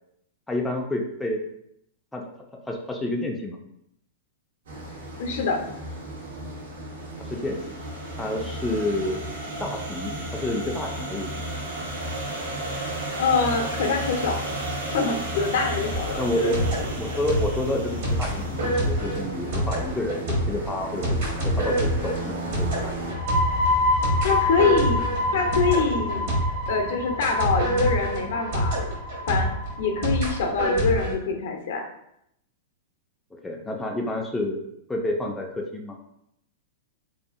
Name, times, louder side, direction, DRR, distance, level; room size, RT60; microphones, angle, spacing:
voice 1, 0.5-1.4 2.1-2.2 2.7-3.6 7.3-7.8 8.2-9.2 9.6-11.5 16.2-16.7 17.0-23.1 33.4-34.6 34.9-36.0, left 1 dB, 5° left, 0 dB, 0.3 m, -29 dB
sound 1, 4.7-23.1, right 1 dB, 85° right, 0.9 m, -33 dB
voice 2, 5.2-5.6 13.2-14.4 14.9-16.5 24.2-25.0 25.3-26.3 26.7-28.8 29.3-29.5 29.8-31.8, left 4 dB, 70° left, 3 dB, 0.5 m, -24 dB
sound 2, 15.9-26.8 27.2-31.1, right 1 dB, 60° right, 1.1 m, -27 dB
sound 3, 23.0-30.4, left 1 dB, 35° right, 0.6 m, -27 dB
2.6 x 2.4 x 2.4 m, 0.76 s
hypercardioid pair, 135°, 0 cm